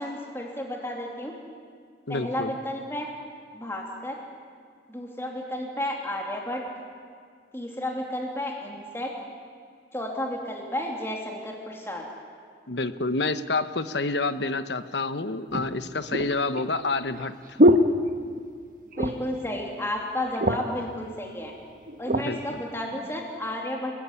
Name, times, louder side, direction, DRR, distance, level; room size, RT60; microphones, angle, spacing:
voice 1, 0.0-1.3 2.1-3.1 3.5-4.1 4.9-6.6 7.5-9.1 9.9-12.0 19.0-21.5 22.0-24.0, left 1 dB, 15° left, 0 dB, 2.9 m, -32 dB
voice 2, 2.1-2.5 12.7-17.3 22.1-22.6, left 3 dB, 75° left, 12 dB, 1.1 m, -28 dB
sound 1, 14.6-14.7 15.5-18.6 18.9-19.4 19.7-19.8 20.1-20.8 21.5-22.3 22.9-23.1, equal, 50° right, 1.3 m, -24 dB
29.5 x 19.0 x 9.7 m, 2.1 s
head